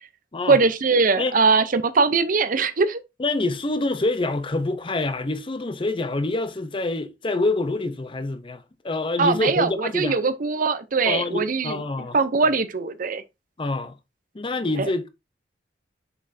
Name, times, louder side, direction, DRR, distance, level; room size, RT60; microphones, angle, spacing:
voice 1, 0.5-3.0 9.2-11.8 12.1-13.2 14.8-14.9, right 4 dB, 50° right, 0.6 m, -21 dB
voice 2, 3.2-10.2 11.1-12.2 13.6-14.0 14.3-15.1, left 2 dB, 30° left, 0.6 m, -26 dB
6.8 x 5.4 x 2.6 m
head